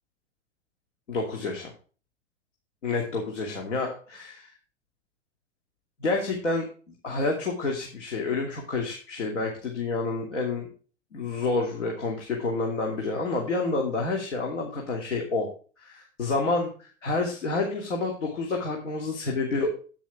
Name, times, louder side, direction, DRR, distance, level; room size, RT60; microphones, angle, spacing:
voice 1, 1.1-1.7 2.8-4.5 6.0-6.6 7.0-10.7 11.1-15.5 15.8-16.7 17.0-19.7, left 3 dB, 70° left, 0 dB, 2.7 m, -28 dB
10.0 x 9.1 x 3.5 m, 0.38 s
figure-of-eight pair, 105°, 38 cm